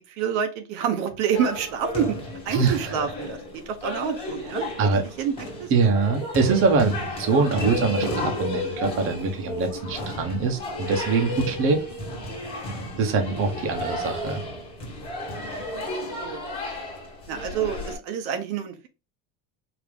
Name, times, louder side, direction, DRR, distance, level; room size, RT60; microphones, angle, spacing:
voice 1, 0.1-2.2 2.4-3.4 3.7-4.7 5.0-5.7 8.0-8.1 13.0-13.2 16.2-16.4 17.3-18.9, right 8 dB, 70° right, 6 dB, 1.0 m, -28 dB
sound 1, 1.3-18.0, left 1 dB, 15° left, 1.7 m, -33 dB
voice 2, 2.5-2.9 4.8-5.0 5.7-11.8 13.0-14.4, right 4 dB, 35° right, 4 dB, 1.0 m, -23 dB
5.0 x 2.9 x 3.5 m, 0.29 s
cardioid pair, 160°, 36 cm